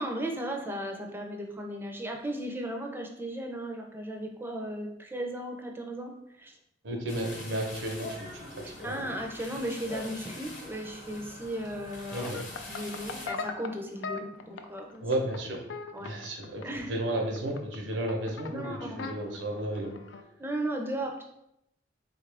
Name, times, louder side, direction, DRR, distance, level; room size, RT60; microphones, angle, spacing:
voice 1, 0.0-6.6 8.8-12.3 12.7-15.0 15.9-16.9 18.5-19.1 20.4-21.2, right 1 dB, 10° right, 1 dB, 0.4 m, -36 dB
voice 2, 6.8-9.0 12.1-12.4 15.0-15.6 16.0-19.9, right 1 dB, 85° right, 1 dB, 0.8 m, -33 dB
sound 1, 7.1-13.3, left 2 dB, 45° left, 0.9 m, -43 dB
sound 2, 12.2-20.2, left 4 dB, 90° left, 0.4 m, -40 dB
3.9 x 2.4 x 3.3 m, 0.81 s
head